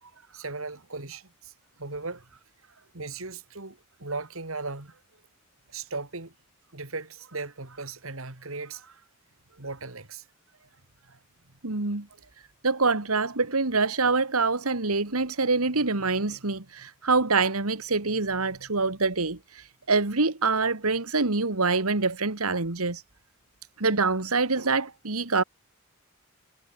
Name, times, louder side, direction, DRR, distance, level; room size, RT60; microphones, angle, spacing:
voice 1, 0.2-1.5 1.8-2.2 2.7-5.0 5.7-6.3 6.7-9.0 9.5-10.3 10.6-10.7 11.1-11.2 12.1-12.3, right 3 dB, 70° right, 2.7 m, -38 dB
voice 2, 11.6-12.1 12.6-23.0 23.8-25.4, right 3 dB, 90° right, 2.2 m, -25 dB
head